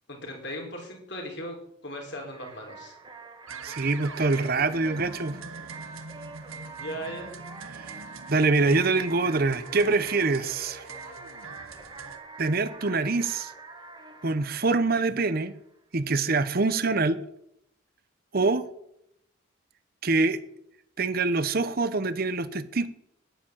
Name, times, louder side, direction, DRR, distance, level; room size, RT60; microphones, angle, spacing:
voice 1, 0.1-1.6 1.8-2.9 6.8-7.3, equal, 55° left, 3.9 m, -37 dB
sound 1, 2.3-15.8, right 3 dB, 20° right, 1.7 m, -47 dB
sound 2, 3.5-12.2, right 5 dB, 85° right, 1.4 m, -42 dB
voice 2, 3.6-5.4 8.3-10.8 12.4-13.5 14.2-15.5 15.9-17.2 18.3-18.6 20.0-20.4 21.0-22.9, right 3 dB, 45° right, 0.8 m, -25 dB
10.5 x 10.0 x 7.4 m
head